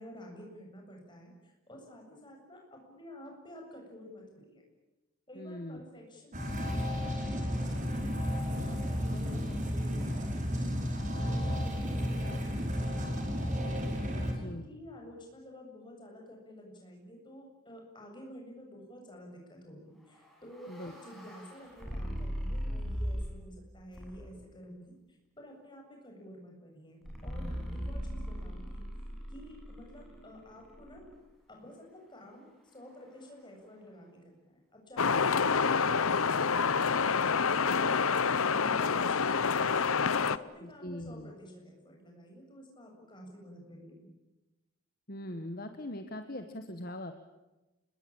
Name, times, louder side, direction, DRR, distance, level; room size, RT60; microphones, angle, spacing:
voice 1, 0.0-4.6 5.3-13.7 14.1-28.8 29.3-31.1 31.5-36.0 40.2-44.1, equal, 20° left, 1 dB, 7.9 m, -50 dB
voice 2, 5.3-5.8 14.4-14.6 20.7-20.9 40.6-41.3 45.1-47.1, left 1 dB, 45° left, 7 dB, 1.5 m, -41 dB
sound 1, 6.3-14.3, equal, 35° right, 5.0 m, -32 dB
sound 2, 20.1-23.5 23.9-24.5 27.0-31.1, equal, ahead, 7.9 m, -39 dB
sound 3, 35.0-40.4, left 5 dB, 85° left, 0.9 m, -27 dB
28.5 x 21.5 x 8.9 m, 1.0 s
head